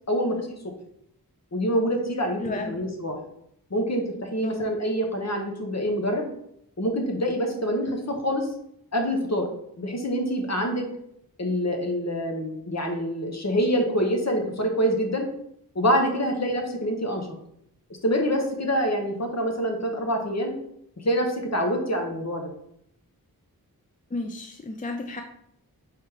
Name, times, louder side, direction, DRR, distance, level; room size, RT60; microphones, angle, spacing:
voice 1, 0.1-0.5 1.5-3.1 3.7-6.2 6.8-8.5 8.9-9.5 9.8-10.8 11.4-15.3 15.7-17.3 18.0-20.5 21.0-22.5, equal, 45° left, 3 dB, 1.0 m, -26 dB
voice 2, 2.4-2.7 4.4-4.7 24.1-25.2, left 2 dB, 25° left, 4 dB, 0.4 m, -32 dB
3.5 x 3.1 x 4.7 m, 0.73 s
wide cardioid pair, 50°, 37 cm